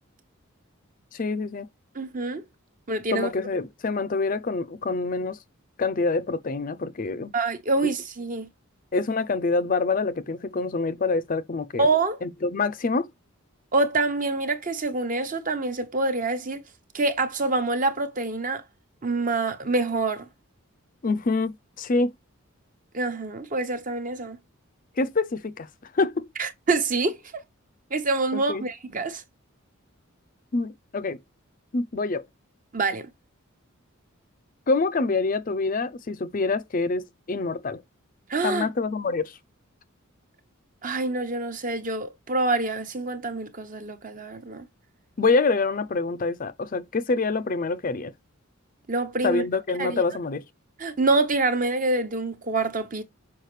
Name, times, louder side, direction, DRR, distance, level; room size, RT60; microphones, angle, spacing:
voice 1, 1.1-1.7 3.1-5.4 5.8-7.3 8.9-11.9 12.2-13.1 21.0-22.1 25.0-25.7 25.9-26.3 28.3-28.6 30.5-31.2 31.7-32.2 34.7-37.8 38.4-39.4 45.2-48.1 49.2-50.4, left 3 dB, 40° left, 0.5 m, -26 dB
voice 2, 1.9-2.4 2.9-3.3 7.3-8.5 11.8-12.2 13.7-16.6 16.9-18.6 19.0-20.3 22.9-24.4 26.4-27.2 27.9-29.2 32.7-33.1 38.3-38.7 40.8-44.7 48.9-49.4 49.8-50.0 50.8-53.0, right 3 dB, 40° right, 1.0 m, -26 dB
6.5 x 4.9 x 3.1 m
head